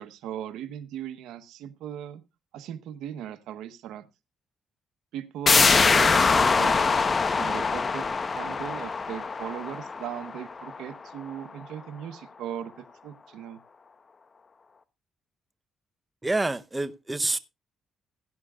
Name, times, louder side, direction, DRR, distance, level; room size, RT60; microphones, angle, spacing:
voice 1, 0.0-2.2 2.5-4.1 5.1-7.1 7.4-8.1 8.3-12.7 13.0-13.6, right 10 dB, 85° right, 1.0 m, -38 dB
sound 1, 5.5-10.9 11.3-11.4, left 4 dB, 35° left, 0.9 m, -23 dB
voice 2, 16.2-17.4, right 2 dB, 15° right, 0.7 m, -27 dB
16.5 x 11.0 x 2.3 m
cardioid pair, 90°, 0 cm